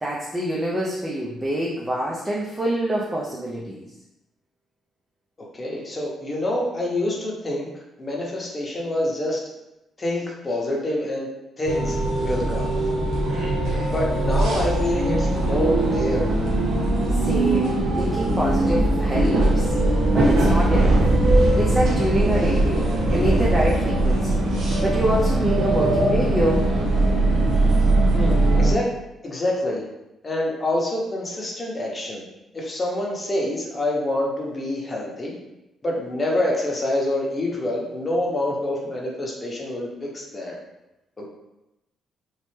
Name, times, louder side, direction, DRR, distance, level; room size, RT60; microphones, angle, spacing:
voice 1, 0.0-3.9 17.1-19.7 20.1-21.0 21.5-24.4 24.8-26.7, right 1 dB, 15° right, -4 dB, 0.5 m, -26 dB
voice 2, 5.5-7.7 8.0-9.4 10.0-11.3 11.6-12.7 13.9-16.4 28.1-28.9 29.2-29.8 30.2-32.2 32.5-35.3 35.8-40.5 41.2-41.3, left 1 dB, 30° left, -2 dB, 0.8 m, -26 dB
sound 1, 11.7-28.7, right 2 dB, 80° right, 0.6 m, -20 dB
3.1 x 2.0 x 3.2 m, 0.92 s
cardioid pair, 90°, 0 cm